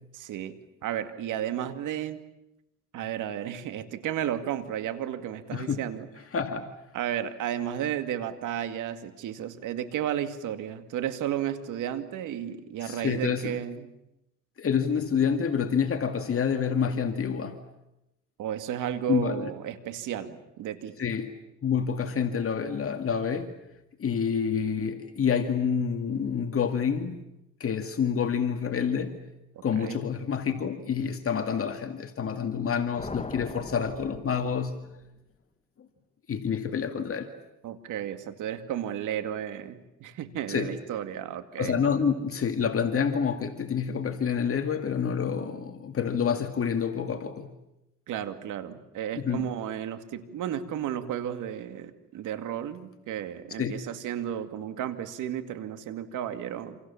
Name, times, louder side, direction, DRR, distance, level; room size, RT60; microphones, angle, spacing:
voice 1, 0.1-2.2 2.9-6.1 6.9-13.9 18.4-20.9 29.7-30.0 37.6-41.8 48.1-56.8, right 10 dB, 85° right, 2.4 m, -33 dB
voice 2, 6.3-6.7 12.8-13.6 14.6-17.6 19.1-19.5 21.0-21.3 21.6-23.5 24.0-27.2 27.6-29.2 29.6-34.8 36.3-37.3 40.5-40.7 41.6-47.5 49.2-49.5 53.6-53.8, left 7 dB, 45° left, 2.3 m, -28 dB
sound 1, 33.0-35.2, left 3 dB, 20° left, 1.5 m, -40 dB
28.0 x 27.5 x 7.3 m
cardioid pair, 90°, 30 cm